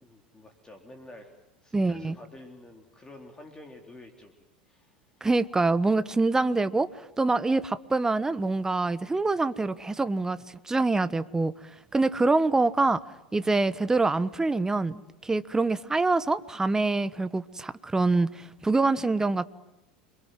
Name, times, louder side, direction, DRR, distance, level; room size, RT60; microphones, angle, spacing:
voice 1, 0.0-1.3 1.6-4.3 4.7-5.3, left 1 dB, 15° left, 3.6 m, -49 dB
voice 2, 1.7-2.2 5.2-6.9 7.2-10.4 10.6-11.5 11.9-13.0 13.3-19.5, right 3 dB, 10° right, 1.2 m, -25 dB
30.0 x 23.0 x 7.7 m
hypercardioid pair, 85°, 5 cm